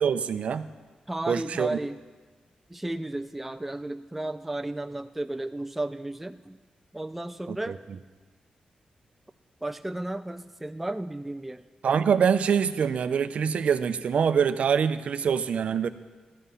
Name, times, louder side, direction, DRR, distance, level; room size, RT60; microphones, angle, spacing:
voice 1, 0.0-0.7 1.3-1.8 7.5-7.7 11.8-15.9, right 7 dB, 60° right, 12 dB, 0.5 m, -25 dB
voice 2, 1.1-2.0 2.7-6.6 6.9-7.8 9.6-11.6, right 1 dB, 5° right, 8 dB, 0.3 m, -33 dB
13.0 x 11.0 x 5.6 m, 1.3 s
wide cardioid pair, 160°, 2 cm